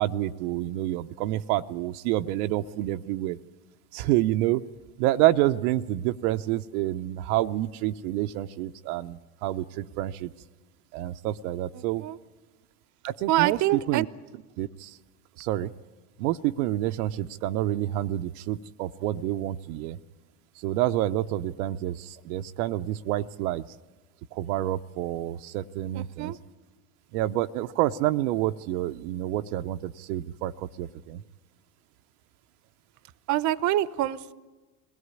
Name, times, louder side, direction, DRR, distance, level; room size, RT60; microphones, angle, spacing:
voice 1, 0.0-3.4 3.9-4.6 5.0-10.3 10.9-12.0 13.0-14.1 14.6-15.0 15.4-15.7 16.2-20.0 20.6-23.6 24.3-26.3 27.1-31.2, right 14 dB, 75° right, 8 dB, 0.7 m, -28 dB
voice 2, 11.7-12.2 13.3-14.0 25.9-26.4 33.3-34.3, right 14 dB, 40° right, 17 dB, 0.8 m, -26 dB
21.5 x 16.5 x 9.6 m, 1.2 s
supercardioid pair, 105°, 45 cm